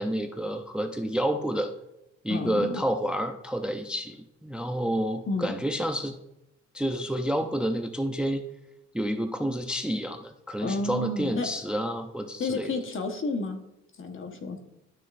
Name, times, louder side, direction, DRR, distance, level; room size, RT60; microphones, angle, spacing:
voice 1, 0.0-1.7 2.2-6.1 6.7-8.4 8.9-12.7, equal, 5° right, 7 dB, 0.5 m, -29 dB
voice 2, 2.3-2.8 5.3-5.5 10.6-11.5 12.4-13.6 14.0-14.6, left 3 dB, 45° left, 5 dB, 1.3 m, -31 dB
12.0 x 6.3 x 2.6 m, 0.86 s
cardioid pair, 90°, 30 cm